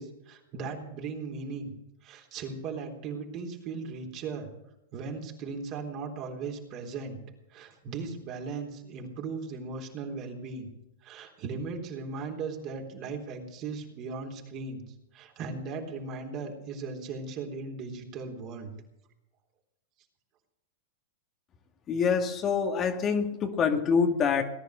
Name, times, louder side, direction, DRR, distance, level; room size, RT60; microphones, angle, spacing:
voice 1, 0.0-1.7 2.0-4.5 4.9-7.2 7.5-10.7 11.0-14.8 15.1-18.7, right 4 dB, 40° right, 2 dB, 3.7 m, -37 dB
voice 2, 21.9-24.4, left 6 dB, 30° left, 4 dB, 1.9 m, -26 dB
18.5 x 10.5 x 6.6 m, 0.88 s
hypercardioid pair, 120°, 0 cm